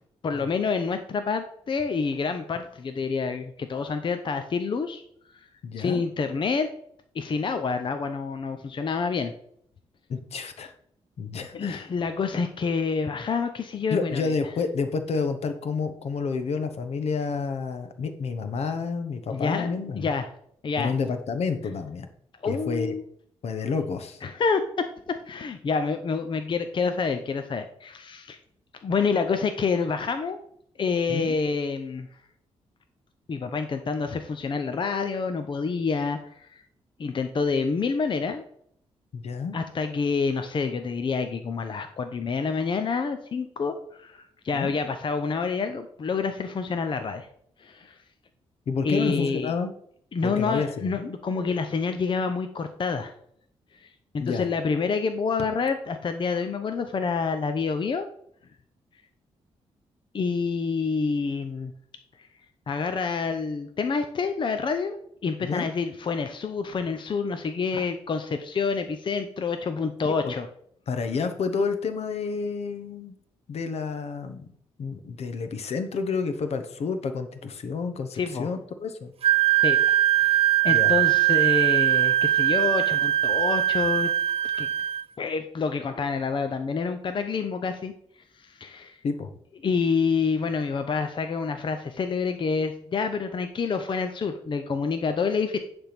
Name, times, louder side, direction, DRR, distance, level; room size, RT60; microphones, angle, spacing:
voice 1, 0.2-5.0 5.4-5.5 5.8-6.7 7.1-9.3 11.5-14.3 19.3-20.3 20.6-20.9 22.4-23.0 24.2-28.4 28.8-30.4 30.8-32.1 33.3-36.6 37.0-38.4 39.5-47.3 47.6-48.0 48.8-49.5 50.1-53.1 53.8-58.1 60.1-61.7 62.2-62.3 62.7-65.0 65.2-70.5 78.1-78.5 79.6-79.8 80.2-84.1 84.4-84.7 85.2-87.9 88.4-89.0 89.6-95.6, left 5 dB, 45° left, 7 dB, 0.7 m, -28 dB
voice 2, 5.6-6.0 10.1-10.7 11.2-11.9 13.9-20.1 20.8-22.1 22.4-22.9 23.4-24.2 31.1-31.4 39.1-39.6 44.5-44.7 48.7-49.7 50.2-51.1 54.2-54.5 65.4-65.7 70.1-70.3 70.9-73.1 73.5-74.5 74.8-79.1 80.7-80.9 89.0-89.3, left 5 dB, 65° left, 9 dB, 1.0 m, -29 dB
Wind instrument woodwind instrument, 79.2-85.0, right 13 dB, 55° right, 0.5 m, -21 dB
10.0 x 3.5 x 5.9 m, 0.66 s
cardioid pair, 80°, 12 cm